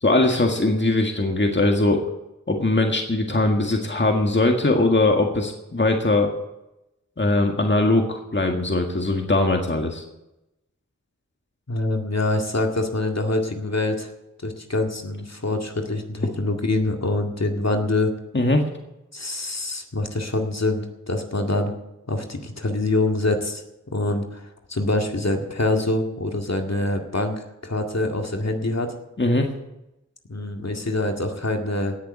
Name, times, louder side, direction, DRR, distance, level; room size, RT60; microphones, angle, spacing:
voice 1, 0.0-2.0 2.5-6.3 7.2-10.0 18.3-18.6 29.2-29.5, left 2 dB, 35° left, 3 dB, 1.8 m, -20 dB
voice 2, 11.7-14.1 14.4-18.1 19.1-21.7 22.1-23.6 23.9-28.9 30.3-32.0, left 2 dB, 55° left, 3 dB, 2.1 m, -25 dB
17.5 x 7.0 x 8.9 m, 0.92 s
wide cardioid pair, 45°, 31 cm